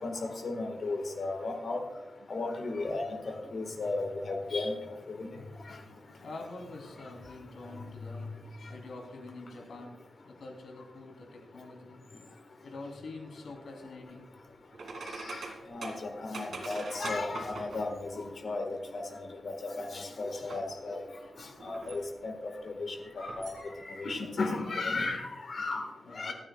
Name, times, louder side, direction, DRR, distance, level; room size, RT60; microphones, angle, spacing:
voice 1, 0.0-1.8 2.3-4.7 5.1-5.3 15.1-15.4 15.7-19.0 19.4-21.0 21.6-22.3 22.7-23.5 23.8-25.9 26.1-26.3, left 3 dB, 50° left, 4 dB, 1.5 m, -35 dB
voice 2, 6.1-10.0 10.2-12.0 12.6-14.3 26.0-26.3, left 2 dB, 75° left, 1 dB, 3.1 m, -46 dB
sound 1, 14.7-18.0 20.5-20.7 21.2-22.1 23.1-23.6, right 3 dB, 60° right, 2.2 m, -43 dB
25.5 x 9.5 x 2.3 m, 1.1 s
wide cardioid pair, 170°, 0 cm